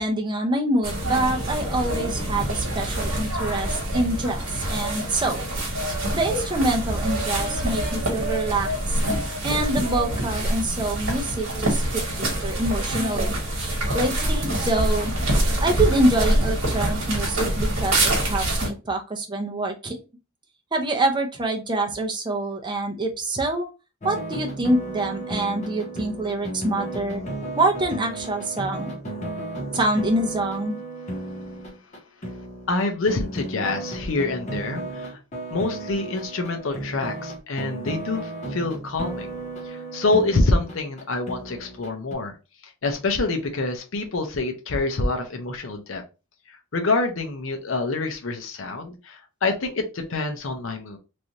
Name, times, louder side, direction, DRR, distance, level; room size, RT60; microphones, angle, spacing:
voice 1, 0.0-5.5 6.1-9.0 9.4-13.3 13.9-15.1 15.6-20.0 20.7-23.7 24.0-27.2 27.6-28.9 29.7-30.8, right 2 dB, 20° right, 2 dB, 0.6 m, -25 dB
sound 1, 0.8-18.7, right 1 dB, 70° right, 1.3 m, -25 dB
sound 2, 24.0-42.1, right 2 dB, 35° left, 0.8 m, -34 dB
voice 2, 32.7-35.2 35.5-39.3 39.6-42.4 42.6-46.0 46.5-51.0, left 3 dB, 70° left, 4 dB, 0.6 m, -26 dB
3.2 x 2.6 x 2.8 m, 0.30 s
head